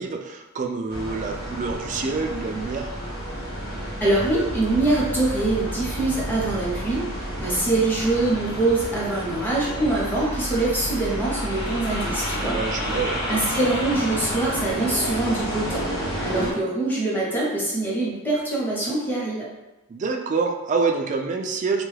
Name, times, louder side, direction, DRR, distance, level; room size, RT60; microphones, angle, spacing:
voice 1, 0.0-3.0 7.4-7.7 12.5-13.2 16.4-16.6 19.9-21.8, right 4 dB, 35° right, 3 dB, 0.3 m, -27 dB
sound 1, 0.9-16.5, equal, 85° left, 0.9 m, -30 dB
voice 2, 4.0-12.6 13.3-15.8 16.2-19.5, right 2 dB, 10° left, -6 dB, 0.9 m, -24 dB
3.4 x 2.3 x 3.2 m, 1.0 s
head